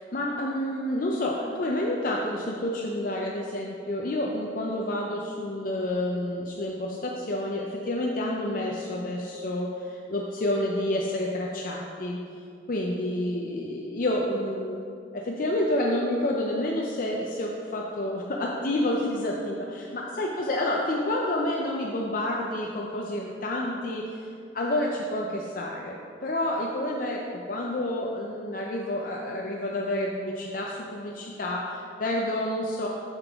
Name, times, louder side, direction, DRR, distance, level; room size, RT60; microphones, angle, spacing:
voice 1, 0.0-12.2 12.7-14.8 15.1-19.6 19.9-24.0 24.5-32.9, left 1 dB, 50° left, -1 dB, 0.6 m, -29 dB
8.5 x 6.7 x 3.6 m, 2.5 s
head